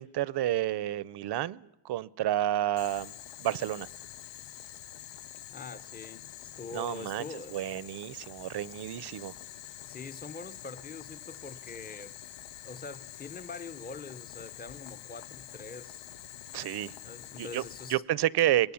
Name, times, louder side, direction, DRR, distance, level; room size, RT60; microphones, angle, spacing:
voice 1, 0.0-3.1 3.4-3.9 6.7-9.3 16.5-16.9 17.4-17.6 17.9-18.7, right 13 dB, 65° right, 0.7 m, -30 dB
Boiling, 2.8-17.9, left 12 dB, 85° left, 0.7 m, -47 dB
voice 2, 5.5-7.6 9.9-12.2 12.6-16.0 17.0-18.0, left 4 dB, 20° left, 0.7 m, -44 dB
23.0 x 19.0 x 7.0 m
wide cardioid pair, 145°, 42 cm